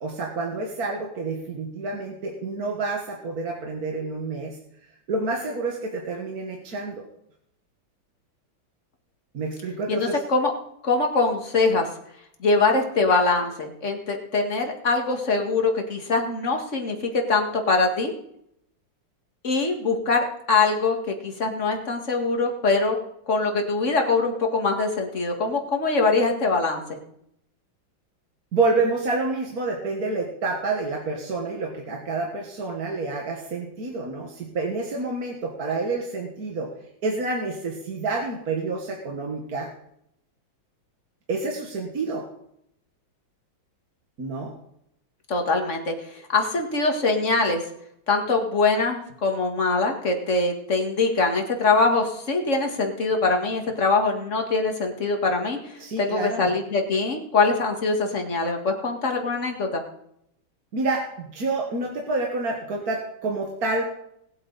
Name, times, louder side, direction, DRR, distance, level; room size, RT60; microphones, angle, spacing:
voice 1, 0.0-4.6 5.1-7.1 9.3-10.2 28.5-36.7 37.0-39.7 41.3-42.3 44.2-44.6 55.8-56.5 60.7-63.8, right 3 dB, 50° right, 0 dB, 1.9 m, -28 dB
voice 2, 9.9-10.5 10.8-11.9 12.4-17.0 17.3-18.1 19.4-23.0 23.3-27.0 45.3-45.9 46.3-47.6 48.1-59.8, left 3 dB, 40° left, 3 dB, 2.1 m, -23 dB
19.5 x 8.6 x 4.0 m, 0.74 s
omnidirectional pair, 2.2 m